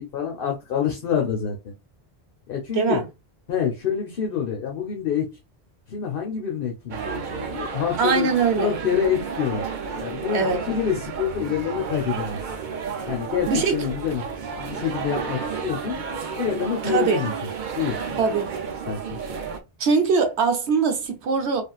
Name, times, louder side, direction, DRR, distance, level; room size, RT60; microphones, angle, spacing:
voice 1, 0.0-1.7 2.5-3.0 3.5-5.3 5.9-8.3 8.6-9.6 9.9-12.4 13.0-14.2 14.6-17.3 17.8-18.2 18.9-19.4, left 8 dB, 60° left, 0.9 m, -27 dB
voice 2, 2.7-3.1 8.0-8.8 10.3-10.6 13.5-13.9 16.8-17.2 18.2-18.5 19.8-21.6, right 5 dB, 85° right, 1.1 m, -22 dB
sound 1, 6.9-19.6, right 6 dB, 55° right, 0.7 m, -32 dB
3.3 x 2.5 x 2.3 m
omnidirectional pair, 1.1 m